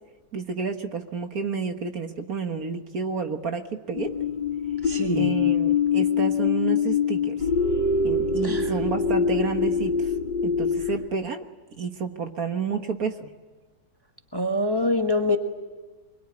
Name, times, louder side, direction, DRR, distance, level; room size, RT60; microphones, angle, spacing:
voice 1, 0.3-4.1 5.1-7.4 8.0-10.1 10.4-11.5 11.8-13.3, right 5 dB, 55° right, 6 dB, 1.8 m, -30 dB
sound 1, 3.9-11.0, left 5 dB, 75° left, 2.6 m, -24 dB
voice 2, 4.8-5.3 8.4-8.8 14.3-15.4, left 2 dB, 15° left, 4 dB, 1.4 m, -25 dB
24.5 x 22.0 x 9.8 m, 1.3 s
omnidirectional pair, 1.9 m